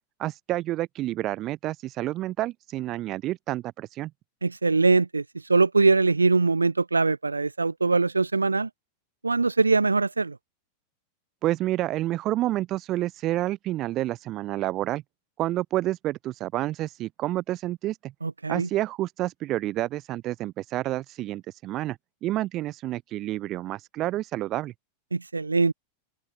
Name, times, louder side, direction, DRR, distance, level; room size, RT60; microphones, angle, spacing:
voice 1, 0.2-4.1 11.4-15.0 15.4-18.1 18.5-24.7, right 15 dB, 35° right, 6.4 m, -29 dB
voice 2, 4.4-5.2 5.5-8.7 9.2-10.4 18.2-18.7 25.1-25.7, right 3 dB, 80° right, 0.8 m, -22 dB
open air
figure-of-eight pair, 90°, 0 cm